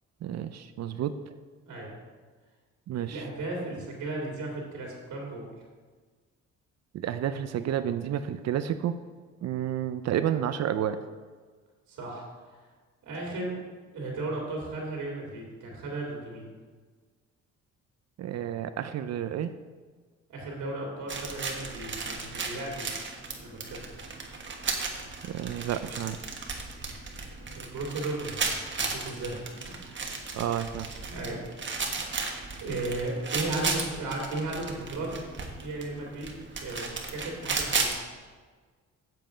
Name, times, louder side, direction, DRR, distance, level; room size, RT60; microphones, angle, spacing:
voice 1, 0.2-1.2 2.9-3.2 6.9-9.0 9.4-11.0 18.2-19.5 25.2-26.2 30.3-30.9, right 10 dB, 60° right, 11 dB, 0.5 m, -30 dB
voice 2, 2.9-5.5 11.9-12.2 13.0-13.6 13.9-16.5 20.3-22.9 23.4-23.8 27.5-28.4 28.8-30.0 31.1-31.4 32.6-36.3 36.6-37.9, right 2 dB, 85° right, -1 dB, 2.6 m, -35 dB
sound 1, 21.1-38.0, right 4 dB, 40° right, 1.4 m, -35 dB
7.7 x 7.4 x 5.0 m, 1.4 s
cardioid pair, 90°, 30 cm